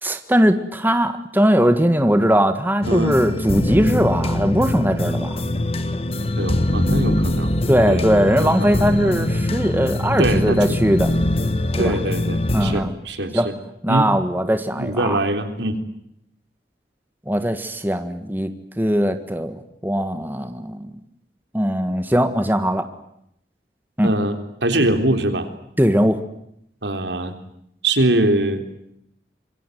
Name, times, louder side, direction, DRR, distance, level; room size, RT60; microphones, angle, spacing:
voice 1, 0.0-5.4 7.7-11.1 11.8-11.9 12.5-12.9 13.3-13.5 13.8-15.2 17.3-20.9 21.5-22.9 24.0-24.1 25.8-26.2, equal, 10° right, 8 dB, 1.6 m, -20 dB
sound 1, 2.8-12.8, left 1 dB, 35° left, 1.4 m, -23 dB
voice 2, 2.8-3.2 6.4-7.5 7.9-8.0 8.4-8.7 10.2-10.8 11.8-13.6 13.9-14.1 14.8-15.8 24.0-25.5 26.8-27.4 27.8-28.6, right 1 dB, 90° right, 7 dB, 3.7 m, -22 dB
26.5 x 23.0 x 9.4 m, 0.75 s
head